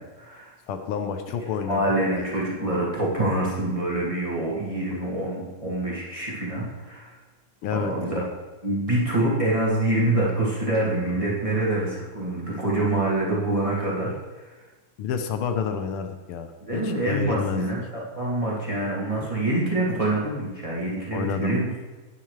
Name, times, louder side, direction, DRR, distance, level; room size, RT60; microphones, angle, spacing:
voice 1, 0.0-0.5 1.7-7.1 7.7-8.2 8.6-14.1 16.6-21.7, right 1 dB, 15° right, -6 dB, 1.9 m, -26 dB
voice 2, 0.7-1.8 2.1-2.3 7.6-7.9 15.0-17.7 19.2-19.3 21.1-21.6, left 7 dB, 80° left, 7 dB, 1.6 m, -29 dB
10.5 x 9.3 x 3.3 m, 1.2 s
omnidirectional pair, 2.4 m